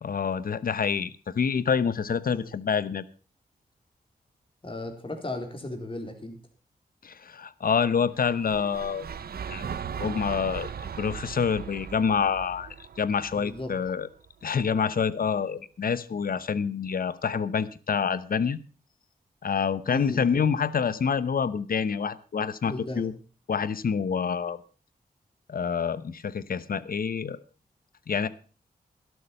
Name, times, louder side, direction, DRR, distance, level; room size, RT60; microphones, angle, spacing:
voice 1, 0.0-3.1 7.0-9.1 9.5-9.7 10.0-12.7 13.0-14.1 14.4-18.6 19.4-23.1 23.5-24.6 25.5-27.4 28.1-28.3, left 6 dB, 65° left, 17 dB, 0.9 m, -27 dB
voice 2, 4.6-6.4 13.4-13.7 19.9-20.4 22.6-23.1, left 1 dB, 35° left, 5 dB, 3.9 m, -35 dB
sound 1, 8.1-14.3, right 7 dB, 80° right, 0.8 m, -38 dB
12.5 x 12.0 x 5.6 m, 0.37 s
cardioid pair, 60°, 16 cm